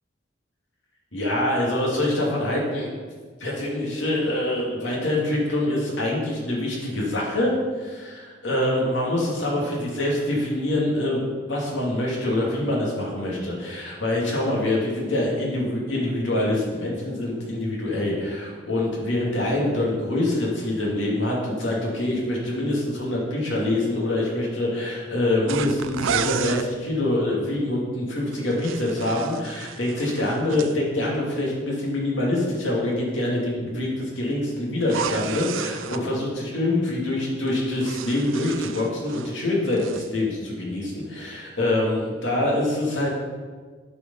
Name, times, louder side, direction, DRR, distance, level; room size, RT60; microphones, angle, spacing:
voice 1, 1.1-2.9 3.4-11.2 11.5-43.1, left 1 dB, 75° left, -3 dB, 2.4 m, -25 dB
sound 1, 25.5-26.7 28.3-30.7 34.8-36.0 37.5-39.4 39.7-40.1, right 8 dB, 90° right, 0.4 m, -32 dB
9.4 x 5.2 x 5.4 m, 1.5 s
head